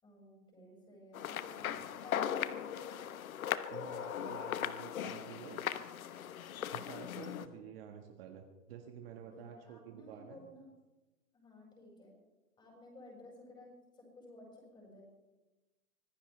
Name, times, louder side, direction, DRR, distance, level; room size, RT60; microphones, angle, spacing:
voice 1, 0.0-1.7 2.0-3.0 7.5-7.6 9.3-10.7 11.3-12.1 12.6-15.0, left 1 dB, 10° left, -1 dB, 5.9 m, -55 dB
sound 1, 1.1-7.5, left 10 dB, 70° left, 1.1 m, -38 dB
voice 2, 1.6-2.0 3.7-5.6 6.7-10.4, right 8 dB, 40° right, 3 dB, 1.7 m, -50 dB
25.0 x 15.5 x 3.4 m, 1.1 s
hypercardioid pair, 150°, 43 cm